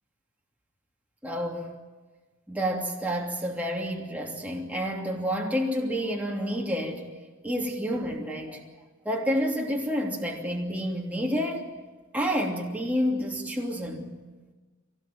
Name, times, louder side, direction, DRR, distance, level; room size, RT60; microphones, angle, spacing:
voice 1, 1.2-1.7 2.5-7.1 7.4-8.6 9.0-11.7 12.1-14.1, equal, 5° right, 2.8 m, -29 dB
23.5 x 18.5 x 9.1 m
head